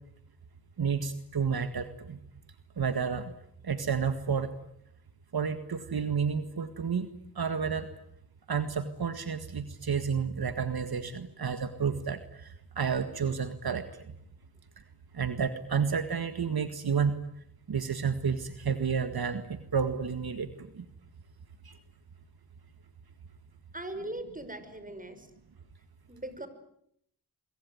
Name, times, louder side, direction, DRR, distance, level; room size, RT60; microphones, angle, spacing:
voice 1, 0.8-2.2 2.8-3.3 3.6-4.5 5.3-7.1 7.4-7.9 8.5-13.9 15.1-17.1 17.7-20.9 21.6-21.7, right 6 dB, 65° right, 10 dB, 1.9 m, -30 dB
voice 2, 23.7-25.3 26.1-26.5, right 1 dB, 20° right, 11 dB, 5.8 m, -39 dB
24.5 x 23.5 x 9.4 m, 0.72 s
cardioid pair, 50°, 39 cm